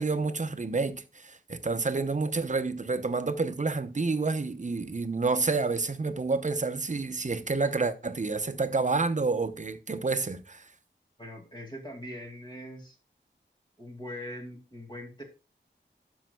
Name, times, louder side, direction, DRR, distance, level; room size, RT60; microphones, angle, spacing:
voice 1, 0.0-10.7, right 3 dB, 40° right, 0.8 m, -29 dB
voice 2, 11.2-13.0 13.8-15.2, left 1 dB, 25° left, 2.2 m, -41 dB
12.0 x 6.3 x 2.2 m
wide cardioid pair, 75°, 19 cm